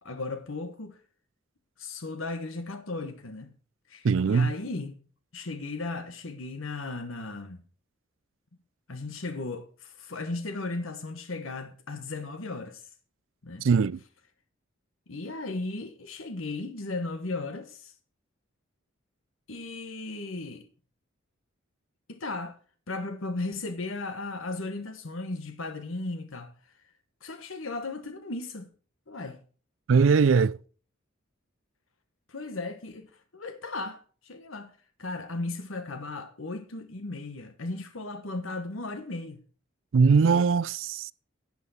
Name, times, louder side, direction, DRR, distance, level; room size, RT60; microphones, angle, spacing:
voice 1, 0.0-1.0 1.8-3.5 3.9-5.0 5.3-7.6 8.9-12.8 13.4-13.7 15.1-17.9 19.5-20.7 22.1-22.6 22.9-26.5 27.2-28.7 29.1-29.4 32.3-34.7 35.0-39.4, left 2 dB, 90° left, 1.3 m, -36 dB
voice 2, 4.0-4.5 13.6-14.0 29.9-30.6 39.9-41.1, right 5 dB, 70° right, 0.4 m, -21 dB
12.0 x 8.4 x 4.2 m
head